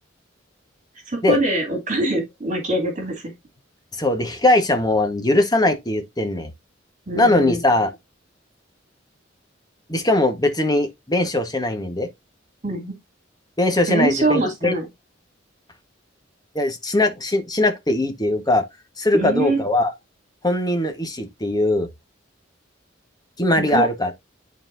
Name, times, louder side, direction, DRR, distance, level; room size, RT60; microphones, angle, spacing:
voice 1, 1.1-3.2 7.1-7.6 12.6-12.9 13.9-14.9 19.1-19.6 23.6-23.9, right 2 dB, 40° right, 2.9 m, -23 dB
voice 2, 3.9-6.5 7.1-7.9 9.9-12.1 13.6-14.7 16.5-18.6 19.0-19.9 20.4-21.9 23.4-24.1, left 1 dB, 20° left, 1.4 m, -20 dB
12.0 x 4.2 x 2.7 m
head